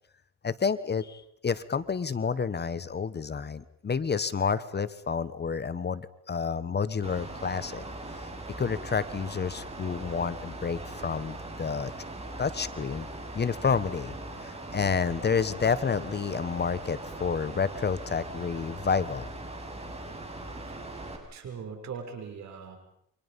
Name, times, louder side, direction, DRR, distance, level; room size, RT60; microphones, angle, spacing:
voice 1, 0.4-7.8 8.6-11.9 12.4-13.1 13.3-14.1 14.4-19.3, left 5 dB, 35° left, 15 dB, 1.3 m, -29 dB
Mechanical fan, 7.0-21.2, right 2 dB, 20° right, 6.7 m, -40 dB
voice 2, 21.3-22.8, right 6 dB, 65° right, 4 dB, 7.1 m, -40 dB
29.5 x 25.5 x 5.5 m, 0.74 s
cardioid pair, 90°, 30 cm